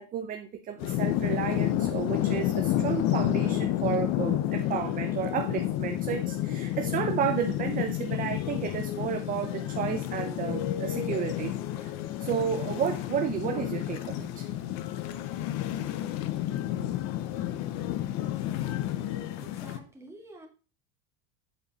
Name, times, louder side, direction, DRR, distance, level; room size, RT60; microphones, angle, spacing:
voice 1, 0.0-14.5, right 8 dB, 25° right, 0.7 m, -32 dB
sound 1, 0.8-19.8, left 12 dB, 50° left, 0.9 m, -30 dB
voice 2, 19.4-20.5, right 2 dB, 10° right, 2.0 m, -48 dB
8.3 x 4.7 x 5.4 m
supercardioid pair, 150°, 34 cm